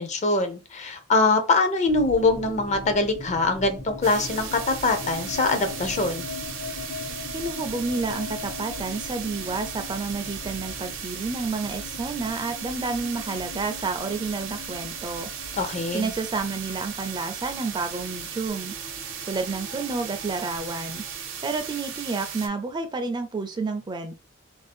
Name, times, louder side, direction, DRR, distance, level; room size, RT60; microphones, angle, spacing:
voice 1, 0.0-6.3 15.5-16.1, left 3 dB, 35° left, 0.5 m, -23 dB
sound 1, 1.9-21.7, left 4 dB, 80° left, 1.1 m, -40 dB
sound 2, 4.0-22.5, right 8 dB, 75° right, 0.6 m, -37 dB
voice 2, 7.3-15.3 15.9-18.7 19.3-21.0 21.4-24.2, right 4 dB, 20° right, 0.3 m, -30 dB
2.6 x 2.3 x 3.4 m
head